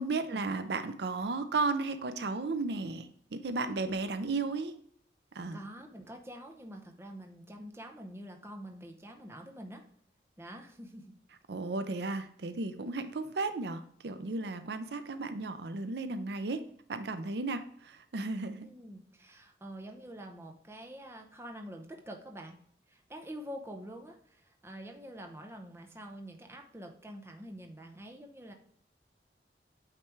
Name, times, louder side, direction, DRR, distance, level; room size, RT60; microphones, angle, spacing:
voice 1, 0.0-4.7 5.3-5.6 11.5-16.6 16.9-18.7, right 3 dB, 70° right, 10 dB, 0.5 m, -34 dB
voice 2, 5.5-9.9 10.4-11.1 14.3-14.5 18.6-22.6 22.9-28.5, equal, 15° right, 3 dB, 0.7 m, -46 dB
8.7 x 3.3 x 4.6 m, 0.64 s
head